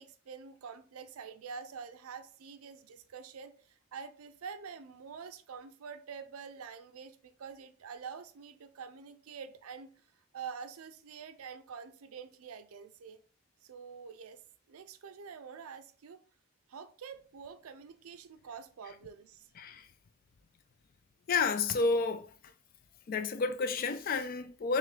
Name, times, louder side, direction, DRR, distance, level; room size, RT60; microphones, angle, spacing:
voice 1, 0.0-9.9 10.3-13.2 13.6-14.4 14.7-16.2 16.7-19.5, right 6 dB, 80° right, 0.4 m, -46 dB
voice 2, 19.6-19.9 21.3-22.3 23.1-24.8, left 4 dB, 40° left, 0.3 m, -30 dB
3.7 x 3.1 x 3.2 m
head